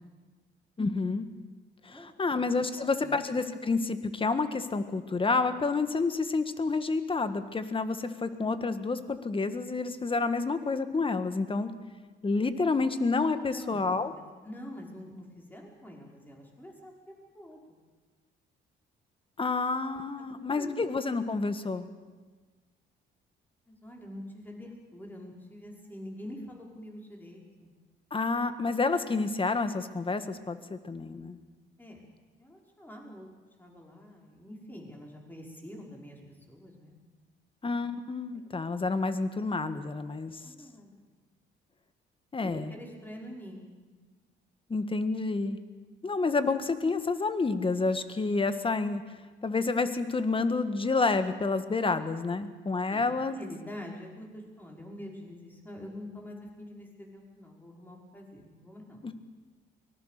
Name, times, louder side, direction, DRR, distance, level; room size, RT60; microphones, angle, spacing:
voice 1, 0.8-1.3 1.8-11.7 12.2-14.1 19.4-21.9 28.1-31.4 37.6-40.4 42.3-42.7 44.7-45.6 46.0-49.0 49.4-53.4 59.0-59.1, left 3 dB, 25° left, 10 dB, 1.6 m, -29 dB
voice 2, 2.7-3.1 13.5-13.9 14.4-17.8 20.2-20.8 23.7-27.7 31.8-32.0 32.4-33.3 33.6-36.2 36.5-37.0 40.1-40.9 42.4-43.7 52.9-59.0, left 1 dB, 10° left, -1 dB, 5.6 m, -45 dB
24.0 x 19.0 x 6.8 m, 1.4 s
cardioid pair, 90°, 20 cm